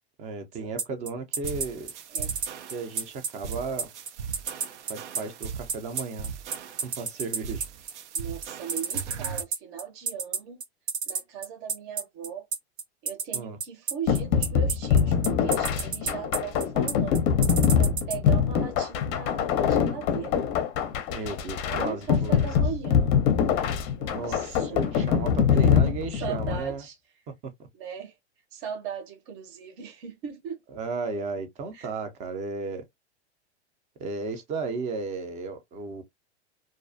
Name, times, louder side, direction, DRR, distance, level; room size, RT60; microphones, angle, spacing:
voice 1, 0.2-1.9 2.7-3.9 4.8-6.3 6.8-7.6 13.3-13.6 21.1-22.5 24.1-26.8 30.7-32.9 34.0-36.0, right 4 dB, 20° right, 0.4 m, -34 dB
sound 1, 0.8-18.2, right 5 dB, 65° right, 1.1 m, -29 dB
sound 2, 1.4-9.4, right 7 dB, 85° right, 0.5 m, -39 dB
voice 2, 8.1-10.6 11.1-12.4 13.0-17.3 17.8-20.4 21.7-23.1 23.9-24.8 25.5-27.0 27.7-28.1 28.5-30.6 31.7-31.9, right 7 dB, 50° right, 0.8 m, -38 dB
sound 3, 14.1-26.6, left 7 dB, 35° left, 0.5 m, -24 dB
2.4 x 2.2 x 2.5 m
supercardioid pair, 135°, 34 cm